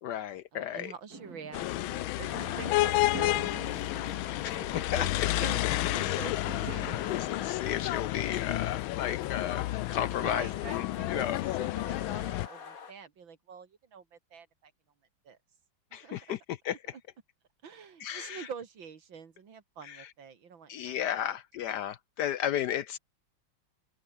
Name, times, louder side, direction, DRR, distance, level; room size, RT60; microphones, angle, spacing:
voice 1, 0.0-0.9 4.4-5.1 6.0-6.2 6.8-11.4 15.9-16.4 16.6-16.8 18.0-18.5 19.8-20.1 20.7-23.0, left 10 dB, 70° left, 1.1 m, -34 dB
voice 2, 0.5-3.9 4.7-5.1 5.4-7.3 7.7-7.9 10.1-14.7 15.2-15.4 15.9-16.3 16.9-17.0 17.6-21.4, right 6 dB, 75° right, 2.9 m, -46 dB
Fireworks, 1.1-7.4, right 2 dB, 45° right, 5.5 m, -47 dB
sound 1, 1.5-12.5, left 17 dB, 85° left, 1.4 m, -31 dB
sound 2, 2.2-12.9, left 6 dB, 45° left, 2.1 m, -46 dB
open air
omnidirectional pair, 2.2 m